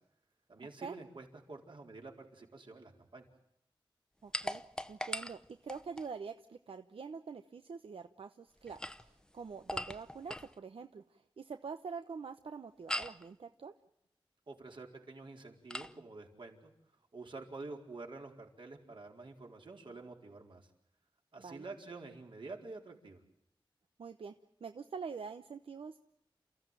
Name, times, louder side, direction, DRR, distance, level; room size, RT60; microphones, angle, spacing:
voice 1, 0.5-3.3 14.5-16.7 17.1-20.7 21.3-23.2, right 3 dB, 65° right, 1 dB, 4.4 m, -48 dB
voice 2, 4.2-4.6 4.9-13.7 21.4-21.6 24.0-24.3 24.6-26.0, right 5 dB, 90° right, 8 dB, 0.9 m, -45 dB
sound 1, 4.3-6.1 8.6-10.5 12.9-13.3 15.7-16.0, left 1 dB, 10° left, 0.8 m, -41 dB
29.0 x 15.0 x 9.2 m, 0.80 s
wide cardioid pair, 75°, 9 cm